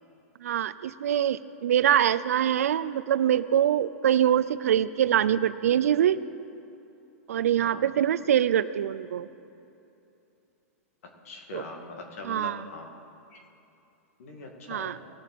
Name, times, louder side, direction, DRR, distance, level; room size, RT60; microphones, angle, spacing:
voice 1, 0.4-6.2 7.3-9.3 11.5-11.6 12.3-12.6 14.7-15.0, right 10 dB, 80° right, 15 dB, 0.5 m, -24 dB
voice 2, 11.2-12.9 13.3-13.4 14.2-14.9, left 3 dB, 70° left, 2 dB, 2.2 m, -41 dB
19.5 x 7.0 x 4.2 m, 2.8 s
hypercardioid pair, 135°, 8 cm